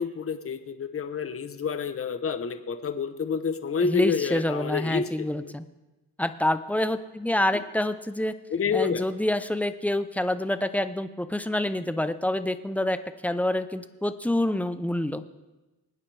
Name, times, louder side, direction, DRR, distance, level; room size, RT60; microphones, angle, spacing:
voice 1, 0.0-5.3 8.5-9.0, left 5 dB, 30° left, 9 dB, 0.9 m, -28 dB
voice 2, 3.8-5.7 6.2-8.3 8.7-15.2, left 1 dB, 5° left, 11 dB, 0.6 m, -27 dB
23.0 x 9.5 x 3.4 m, 1.1 s
cardioid pair, 90°, 42 cm